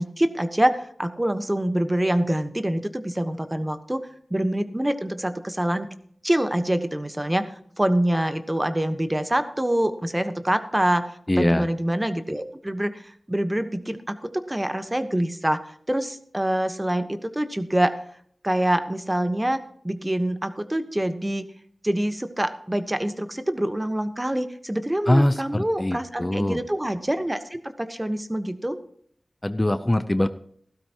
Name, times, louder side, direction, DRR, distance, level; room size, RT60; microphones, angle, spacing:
voice 1, 0.0-4.0 4.3-5.9 6.2-15.6 15.9-18.0 18.4-19.6 19.8-21.5 21.8-28.8, right 1 dB, 20° right, 9 dB, 1.2 m, -25 dB
voice 2, 11.3-11.7 25.1-26.6 29.4-30.3, left 1 dB, 25° left, 11 dB, 0.7 m, -22 dB
15.5 x 12.5 x 3.0 m, 0.63 s
cardioid pair, 40°, 0 cm